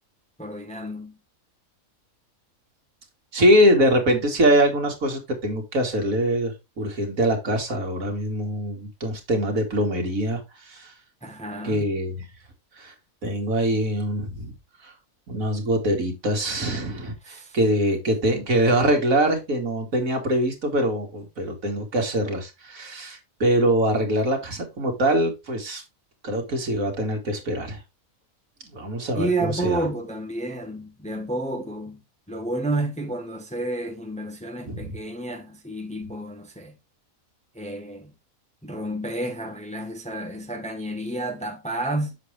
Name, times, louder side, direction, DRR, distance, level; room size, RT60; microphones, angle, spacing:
voice 1, 0.4-1.2 11.2-11.9 17.2-17.6 29.1-32.0 32.3-36.8 37.5-38.1 38.6-42.2, right 2 dB, 5° left, 0.9 m, -30 dB
voice 2, 3.3-10.9 11.6-12.3 12.8-12.9 13.2-14.5 14.8-14.9 15.3-25.8 26.2-27.8 28.7-29.8 34.7-34.9, right 1 dB, 75° right, 2.5 m, -23 dB
7.5 x 6.5 x 3.3 m
omnidirectional pair, 1.4 m